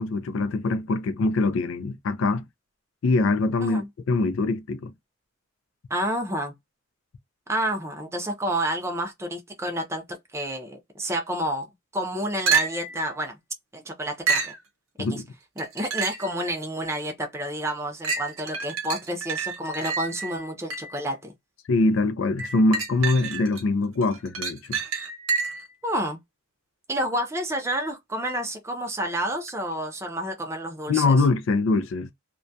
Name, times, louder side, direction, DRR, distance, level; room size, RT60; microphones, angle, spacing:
voice 1, 0.0-2.4 3.0-3.8 4.1-4.9 15.0-15.2 21.7-24.8 30.9-32.1, left 3 dB, 65° left, 0.4 m, -23 dB
voice 2, 5.9-6.5 7.5-11.7 11.9-13.4 13.7-14.5 15.0-15.2 15.6-21.3 25.8-26.2 26.9-31.1, right 1 dB, 15° right, 0.5 m, -29 dB
sound 1, 12.5-13.0 14.3-14.6 15.6-16.3 16.9-17.0 18.0-21.0 22.4-23.6 24.0-25.7 29.5-29.6, right 5 dB, 80° right, 0.8 m, -28 dB
2.2 x 2.1 x 2.6 m
head